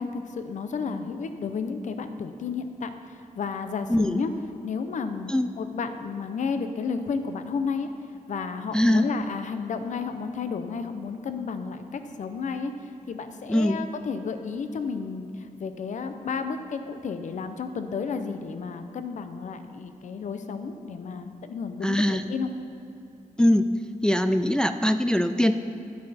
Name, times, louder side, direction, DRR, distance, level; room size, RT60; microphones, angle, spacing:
voice 1, 0.0-4.3 4.6-5.3 5.6-7.9 8.3-12.7 13.1-22.5, left 5 dB, 60° left, 8 dB, 0.7 m, -32 dB
voice 2, 3.9-4.2 5.3-5.5 8.7-9.1 13.5-13.8 21.8-22.3 23.4-23.7 24.0-25.5, left 1 dB, 5° left, 8 dB, 0.3 m, -22 dB
10.5 x 9.8 x 4.2 m, 2.7 s
wide cardioid pair, 140°, 14 cm